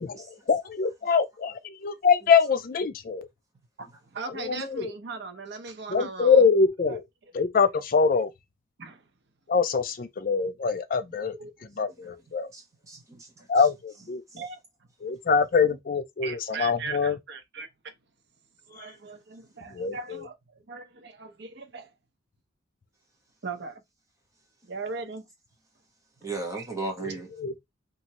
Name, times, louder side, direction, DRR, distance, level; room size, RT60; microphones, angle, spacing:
voice 1, 0.0-3.3 4.4-4.9 5.9-7.0 7.3-8.3 9.5-11.3 11.8-12.5 13.5-14.2 15.0-17.2 19.7-20.2 27.0-27.1 27.4-27.6, left 5 dB, 45° left, 0.4 m, -24 dB
voice 2, 4.1-6.5 6.9-7.0 8.8-9.0 11.3-11.5 14.4-14.6 16.2-17.7 18.7-20.4 20.7-21.9 23.4-23.8 24.7-25.2 26.5-26.7, right 4 dB, 55° right, 0.6 m, -38 dB
voice 3, 12.5-13.3 14.3-14.4 26.2-27.3, right 3 dB, 15° right, 0.9 m, -35 dB
3.0 x 2.5 x 2.8 m
head